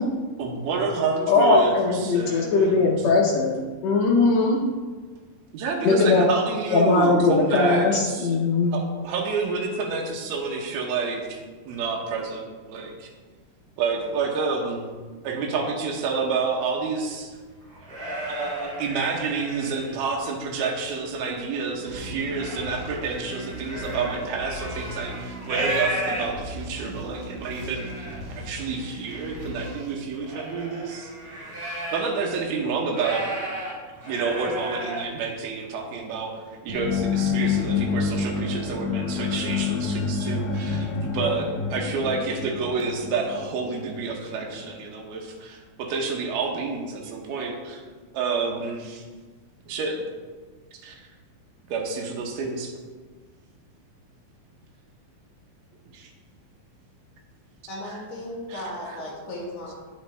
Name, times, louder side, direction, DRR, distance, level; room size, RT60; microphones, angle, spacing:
voice 1, 0.4-2.9 5.5-8.3 8.7-13.1 13.8-14.9 15.2-17.3 18.3-31.1 31.6-33.3 34.0-47.8 48.1-49.0 49.6-50.0 50.8-51.0 51.7-52.7 55.9-56.1 58.5-58.6, right 4 dB, 85° right, 0 dB, 2.9 m, -29 dB
voice 2, 1.3-3.6 3.8-4.6 5.8-6.3 6.7-8.7, left 3 dB, 90° left, -2 dB, 1.5 m, -20 dB
sound 1, 17.5-20.2 20.7-21.4 21.8-26.7 27.2-27.3 27.5-28.2 28.8-32.2 32.5-35.1, right 1 dB, 35° right, 2.5 m, -34 dB
sound 2, 21.9-30.7, equal, 65° right, 2.4 m, -38 dB
sound 3, 36.7-44.4, left 5 dB, 75° left, 2.0 m, -28 dB
voice 3, 57.7-59.7, left 1 dB, 50° left, -5 dB, 2.5 m, -35 dB
8.8 x 7.2 x 3.3 m, 1.4 s
omnidirectional pair, 4.2 m